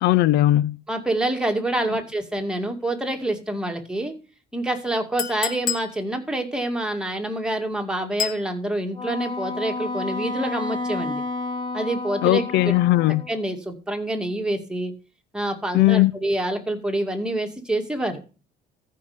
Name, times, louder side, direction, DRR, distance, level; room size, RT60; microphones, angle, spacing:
voice 1, 0.0-0.8 12.2-13.2 15.7-16.2, left 16 dB, 80° left, 0.4 m, -18 dB
voice 2, 0.9-4.1 4.5-11.2 11.7-12.4 13.3-14.9 15.3-18.3, right 1 dB, 5° right, 2.3 m, -27 dB
Chink clink, 5.2-5.9 8.2-8.5, left 8 dB, 55° left, 1.2 m, -27 dB
Wind instrument woodwind instrument, 8.9-13.4, left 3 dB, 30° left, 2.6 m, -31 dB
14.0 x 5.7 x 5.1 m
cardioid pair, 110°, 17 cm